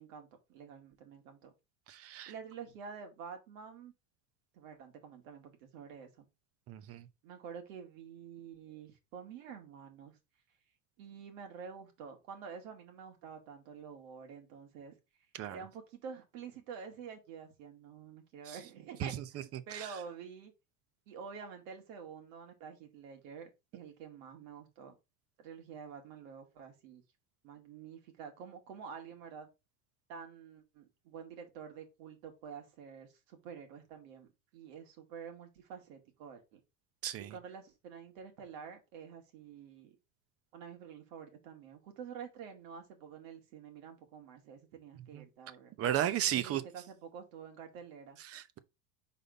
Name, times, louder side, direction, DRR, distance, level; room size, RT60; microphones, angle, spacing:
voice 1, 0.0-1.5 2.3-3.9 4.5-6.3 7.2-10.2 11.0-14.9 15.5-20.5 21.1-24.9 25.4-27.0 27.4-29.5 30.1-36.6 37.2-40.0 40.5-45.7 46.3-48.2, right 6 dB, 70° right, 2.3 m, -48 dB
voice 2, 1.9-2.3 6.7-7.0 15.3-15.6 19.0-19.2 19.5-19.8 37.0-37.3 45.1-45.2 45.8-46.6 48.3-48.6, right 11 dB, 35° right, 0.8 m, -34 dB
5.1 x 4.2 x 5.1 m
supercardioid pair, 130°, 40 cm